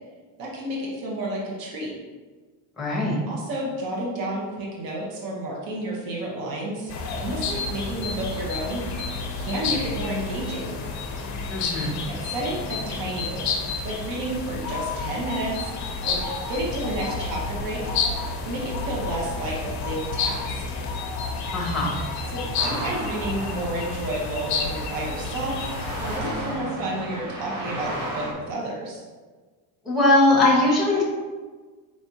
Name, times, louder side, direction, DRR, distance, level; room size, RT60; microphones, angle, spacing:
voice 1, 0.4-1.9 3.3-6.9 7.2-8.8 9.4-10.8 12.1-13.5 13.8-15.7 16.0-17.9 18.4-20.6 22.3-25.7 26.0-29.0, right 1 dB, 55° right, -3 dB, 0.9 m, -31 dB
voice 2, 2.8-3.2 11.5-12.0 21.5-22.0 29.8-31.0, left 2 dB, ahead, -6 dB, 0.9 m, -20 dB
sound 1, 6.9-26.2, left 4 dB, 45° left, 0.5 m, -30 dB
sound 2, 22.5-28.3, right 1 dB, 80° right, 1.2 m, -34 dB
4.7 x 3.3 x 2.7 m, 1.4 s
cardioid pair, 170°, 42 cm